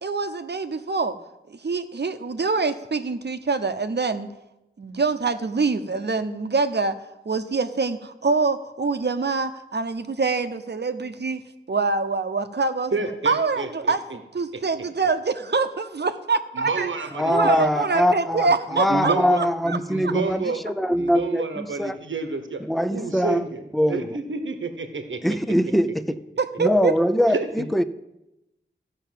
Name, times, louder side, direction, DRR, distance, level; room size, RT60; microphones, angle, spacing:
voice 1, 0.0-1.1 1.5-4.3 4.8-11.4 11.7-12.9 13.2-16.9 17.2-19.8 20.0-20.1 26.4-26.9, right 4 dB, 60° right, 0.8 m, -25 dB
voice 2, 12.9-13.9 14.8-14.9 16.5-17.7 18.7-20.6 21.0-22.6 22.9-23.6 23.9-25.2 27.3-27.7, right 4 dB, 90° right, 1.1 m, -29 dB
voice 3, 17.2-18.5 18.7-22.0 22.7-23.5 23.7-24.2 25.2-26.2 26.6-27.8, equal, ahead, 0.5 m, -22 dB
14.0 x 5.6 x 7.5 m
wide cardioid pair, 75°, 19 cm